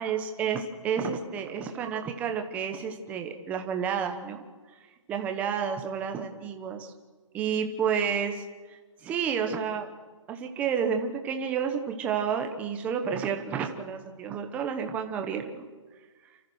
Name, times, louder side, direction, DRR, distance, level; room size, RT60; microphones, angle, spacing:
voice 1, 0.0-4.4 5.1-6.9 7.3-9.9 10.3-15.7, right 7 dB, 10° right, 5 dB, 1.0 m, -30 dB
29.0 x 14.0 x 6.4 m, 1.4 s
hypercardioid pair, 170°, 17 cm